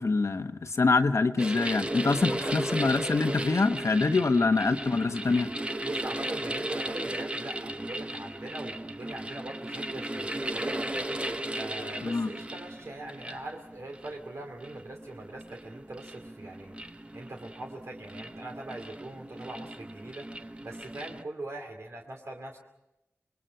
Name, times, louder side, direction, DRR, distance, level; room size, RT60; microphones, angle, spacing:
voice 1, 0.0-5.5 12.0-12.3, left 3 dB, 70° left, 8 dB, 1.2 m, -25 dB
sound 1, 1.4-21.2, right 1 dB, 20° right, 0.8 m, -36 dB
voice 2, 2.2-2.5 4.0-4.2 5.8-10.9 11.5-22.6, right 2 dB, 70° right, 1 dB, 2.6 m, -42 dB
27.0 x 21.5 x 5.7 m, 0.89 s
wide cardioid pair, 65°, 5 cm